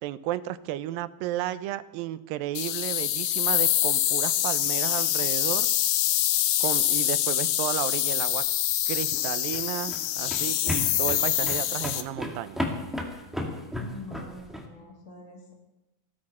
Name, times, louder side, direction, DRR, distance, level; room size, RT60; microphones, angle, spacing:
voice 1, 0.0-5.7 6.6-8.4 8.9-12.6, right 13 dB, 90° right, 14 dB, 2.4 m, -33 dB
sound 1, 2.6-12.0, left 12 dB, 75° left, 2.2 m, -25 dB
sound 2, 9.0-14.6, left 1 dB, ahead, 1.4 m, -34 dB
voice 2, 13.8-15.5, left 2 dB, 20° left, -2 dB, 2.7 m, -44 dB
19.0 x 15.5 x 4.3 m, 0.99 s
omnidirectional pair, 4.0 m